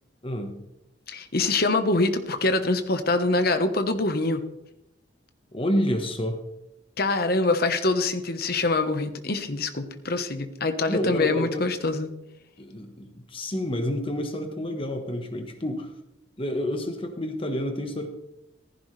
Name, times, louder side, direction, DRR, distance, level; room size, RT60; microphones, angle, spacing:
voice 1, 0.2-0.6 5.5-6.4 10.9-11.7 12.6-15.9 16.4-18.1, left 1 dB, 25° left, 5 dB, 1.3 m, -29 dB
voice 2, 1.1-4.4 7.0-12.1, left 2 dB, 50° left, 8 dB, 1.2 m, -24 dB
15.0 x 15.0 x 3.4 m, 0.88 s
head